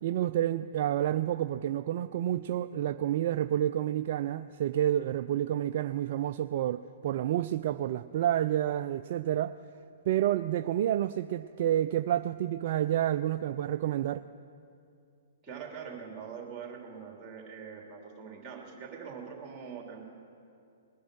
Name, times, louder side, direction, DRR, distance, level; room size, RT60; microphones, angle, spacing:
voice 1, 0.0-9.6 10.1-14.2, right 11 dB, 50° right, 12 dB, 0.3 m, -29 dB
voice 2, 15.4-20.0, right 6 dB, 20° right, 0 dB, 3.0 m, -43 dB
20.0 x 10.0 x 6.2 m, 2.5 s
figure-of-eight pair, 115°, 0 cm